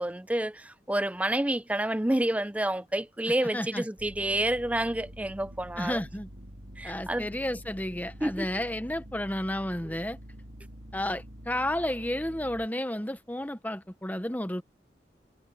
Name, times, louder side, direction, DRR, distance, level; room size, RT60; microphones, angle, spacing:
voice 1, 0.0-6.0 6.8-7.3 8.2-8.6, right 1 dB, 10° right, 0.5 m, -29 dB
voice 2, 3.5-3.8 5.8-6.3 6.8-10.2 10.9-14.6, left 1 dB, 10° left, 0.9 m, -32 dB
sound 1, 4.0-12.7, equal, 75° right, 4.0 m, -46 dB
head